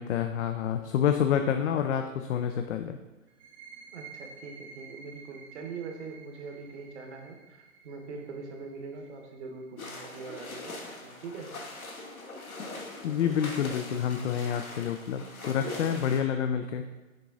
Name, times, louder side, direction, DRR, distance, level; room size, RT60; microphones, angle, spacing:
voice 1, 0.0-3.0 13.0-16.8, left 8 dB, 60° left, 6 dB, 0.5 m, -28 dB
sound 1, 3.3-10.7, right 5 dB, 25° right, 0.6 m, -52 dB
voice 2, 3.9-11.5, right 4 dB, 55° right, 3 dB, 1.3 m, -42 dB
sound 2, 9.8-16.2, left 2 dB, 85° left, 1.5 m, -41 dB
6.6 x 3.8 x 3.7 m, 1.2 s
hypercardioid pair, 125°, 41 cm